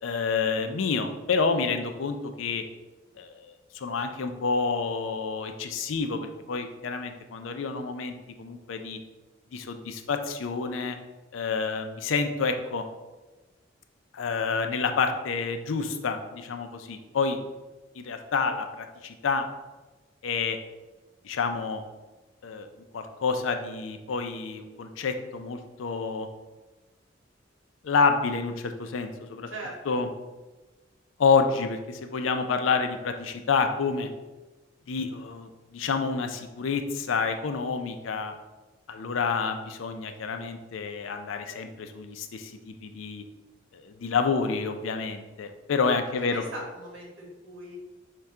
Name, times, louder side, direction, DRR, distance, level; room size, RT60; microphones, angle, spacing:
voice 1, 0.0-2.6 3.2-9.0 9.5-11.0 11.3-12.8 14.1-17.4 17.9-19.5 20.2-20.6 21.2-21.8 22.4-22.7 22.9-26.3 27.8-29.5 29.9-30.1 31.2-34.1 34.9-38.3 38.9-43.2 43.7-46.4, left 5 dB, 90° left, 7 dB, 0.4 m, -28 dB
voice 2, 29.5-30.0 46.2-47.8, right 1 dB, 85° right, -1 dB, 1.1 m, -39 dB
5.5 x 2.2 x 3.6 m, 1.2 s
head